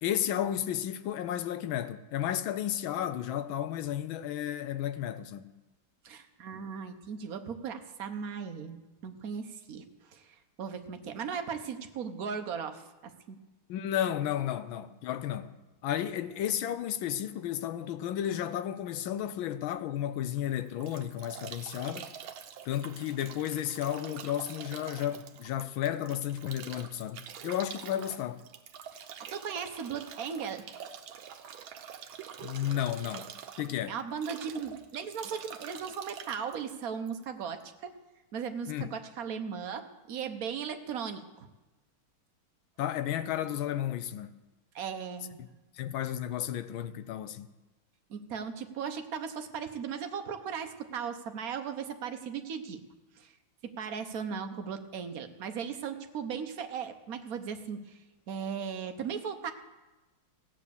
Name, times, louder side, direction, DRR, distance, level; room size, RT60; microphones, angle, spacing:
voice 1, 0.0-5.5 13.7-15.5 15.8-22.1 22.6-28.4 32.4-33.3 33.6-34.0 38.7-38.9 42.8-44.4 45.4-45.5 45.7-47.5, left 11 dB, 75° left, 1.4 m, -33 dB
voice 2, 6.0-8.8 9.0-13.4 28.9-29.0 29.3-30.6 33.9-38.0 38.3-41.5 44.7-45.4 48.1-52.8 53.2-53.3 53.6-58.0 58.3-59.5, right 6 dB, 55° right, 1.1 m, -37 dB
Bathtub (filling or washing) / Drip / Trickle dribble, 20.4-37.6, right 8 dB, 75° right, 1.6 m, -46 dB
15.5 x 9.3 x 6.9 m
omnidirectional pair, 2.3 m